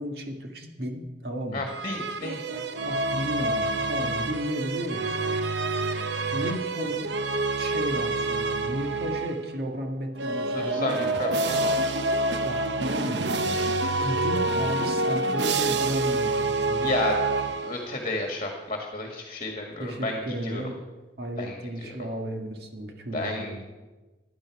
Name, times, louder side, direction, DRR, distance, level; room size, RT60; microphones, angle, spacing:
voice 1, 0.0-1.7 2.8-5.4 6.3-7.1 7.5-11.1 12.4-13.6 14.0-16.9 19.8-20.8 21.2-23.6, equal, 60° right, 3 dB, 1.7 m, -33 dB
voice 2, 1.5-2.6 6.4-6.5 10.5-11.7 16.8-20.6 21.4-22.0 23.1-23.6, left 2 dB, 35° left, 2 dB, 1.7 m, -32 dB
sound 1, 1.7-9.5 10.1-18.1, right 2 dB, 75° right, 0.7 m, -27 dB
15.5 x 10.5 x 4.8 m, 1.2 s
head